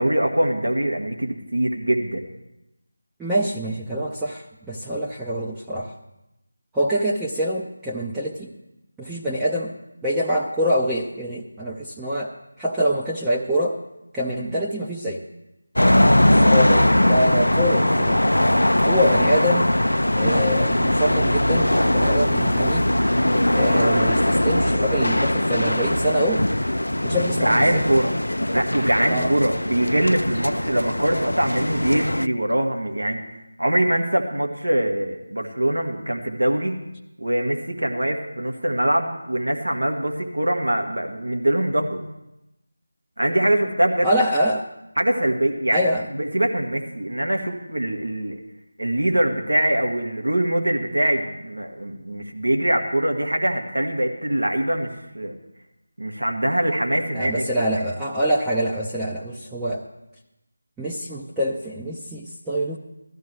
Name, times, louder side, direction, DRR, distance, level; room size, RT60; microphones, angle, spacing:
voice 1, 0.0-2.2 14.4-14.5 15.8-16.3 27.4-28.2 28.5-33.2 33.6-36.8 37.2-42.0 43.2-44.1 45.0-48.4 48.8-54.9 55.1-55.4 56.0-57.5 57.7-57.8, right 1 dB, 85° right, 2 dB, 1.8 m, -23 dB
voice 2, 3.2-5.9 6.7-8.5 9.0-9.7 10.0-12.3 12.6-13.8 14.1-15.2 16.2-18.2 18.9-19.7 20.1-22.9 23.5-26.4 27.0-27.8 29.1-29.3 44.0-44.6 45.7-46.0 57.1-59.8 60.8-62.8, equal, 5° right, -6 dB, 0.6 m, -25 dB
sound 1, 15.8-32.3, left 1 dB, 85° left, 0.4 m, -20 dB
17.5 x 13.0 x 3.3 m, 0.91 s
figure-of-eight pair, 165°, 0 cm